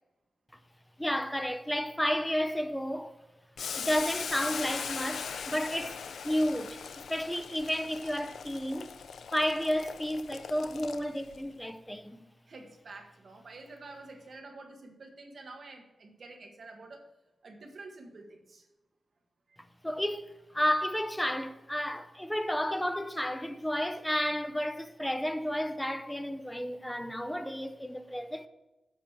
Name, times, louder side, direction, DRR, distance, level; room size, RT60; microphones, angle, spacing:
voice 1, 1.0-3.1 3.8-6.0 6.2-6.8 7.1-8.9 9.3-12.2 19.8-28.5, equal, 5° left, 0.6 m, -32 dB
Boiling, 3.6-11.4, left 6 dB, 85° left, 0.4 m, -40 dB
voice 2, 12.5-17.1 17.4-18.6 19.5-19.6, right 3 dB, 50° right, 1.6 m, -48 dB
7.9 x 5.2 x 7.2 m
wide cardioid pair, 155°, 0 cm